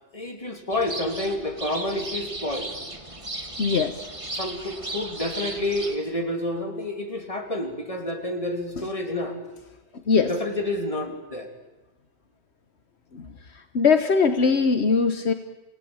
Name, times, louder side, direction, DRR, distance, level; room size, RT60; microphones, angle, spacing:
voice 1, 0.1-2.7 4.3-9.4 10.2-11.5, left 1 dB, 30° left, 4 dB, 3.2 m, -29 dB
sound 1, 0.7-6.0, right 2 dB, 30° right, 2.3 m, -35 dB
voice 2, 3.6-3.9 10.1-10.3 13.1-13.2 13.7-15.3, left 5 dB, 75° left, 9 dB, 1.4 m, -20 dB
28.0 x 18.0 x 8.9 m, 1.1 s
omnidirectional pair, 1.1 m